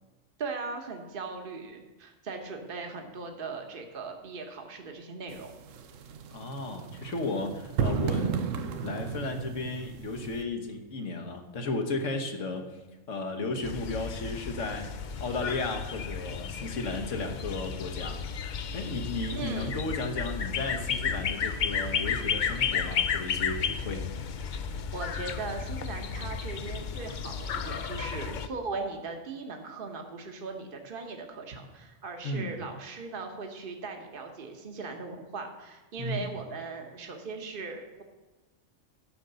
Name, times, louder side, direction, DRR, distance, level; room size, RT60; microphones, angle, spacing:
voice 1, 0.4-5.5 19.3-19.8 24.9-38.0, right 4 dB, 45° right, 4 dB, 1.2 m, -39 dB
sound 1, 5.3-10.4, right 7 dB, 90° right, 1.1 m, -34 dB
voice 2, 6.3-8.4 8.8-12.8 13.1-14.9 15.2-18.2 18.7-24.0 32.2-32.5 36.0-36.3, left 2 dB, 80° left, 5 dB, 1.4 m, -34 dB
sound 2, 13.6-28.5, left 6 dB, 55° left, 0.5 m, -33 dB
12.0 x 5.2 x 6.8 m, 1.1 s
omnidirectional pair, 1.3 m